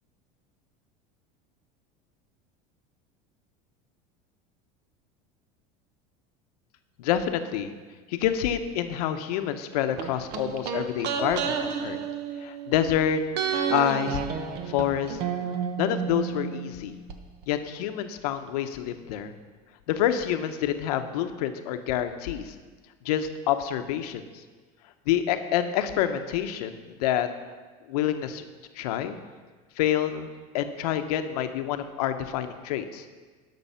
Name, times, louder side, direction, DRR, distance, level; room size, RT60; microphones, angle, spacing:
voice 1, 7.0-7.7 8.1-12.0 12.4-13.2 13.7-14.2 14.6-15.2 15.8-16.9 17.5-19.3 19.9-22.5 23.0-24.4 25.1-27.3 27.9-28.4 28.7-29.2 29.8-30.3 30.5-33.1, left 10 dB, 85° left, 8 dB, 0.9 m, -27 dB
sound 1, 10.0-13.0 13.3-17.2 17.4-17.5, right 6 dB, 55° right, 1.0 m, -31 dB
12.0 x 6.2 x 5.6 m, 1.4 s
supercardioid pair, 125°, 19 cm